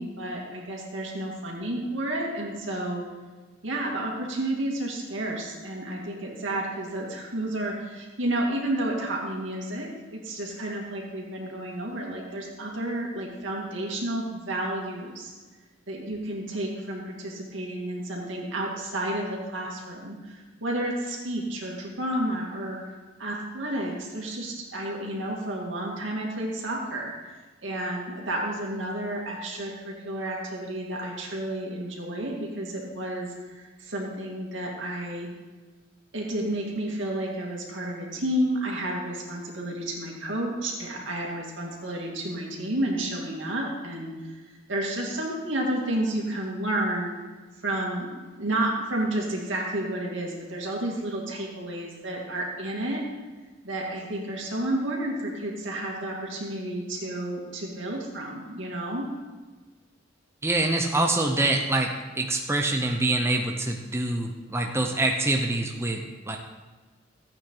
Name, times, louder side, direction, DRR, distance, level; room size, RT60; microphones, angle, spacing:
voice 1, 0.0-3.0 3.6-15.3 15.9-22.8 23.2-27.1 27.6-35.3 36.1-44.1 44.7-47.1 47.6-53.0 53.6-59.1, right 1 dB, 75° right, -2 dB, 2.6 m, -31 dB
voice 2, 60.4-66.4, right 2 dB, 15° right, 2 dB, 0.8 m, -25 dB
14.5 x 8.7 x 3.9 m, 1.3 s
head